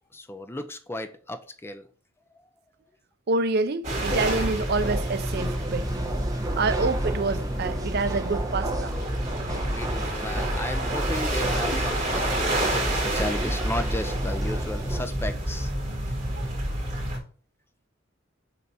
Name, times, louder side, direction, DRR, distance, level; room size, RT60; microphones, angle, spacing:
voice 1, 0.1-1.9 2.8-2.9 9.5-15.7, left 1 dB, 10° left, 0.6 m, -34 dB
voice 2, 3.3-5.9 6.5-9.0 16.4-16.5, right 3 dB, 55° right, 0.5 m, -27 dB
sound 1, 3.8-17.2, right 1 dB, 35° right, 2.8 m, -28 dB
sound 2, 3.9-15.1, right 2 dB, 20° right, 1.1 m, -35 dB
6.8 x 3.4 x 4.2 m
head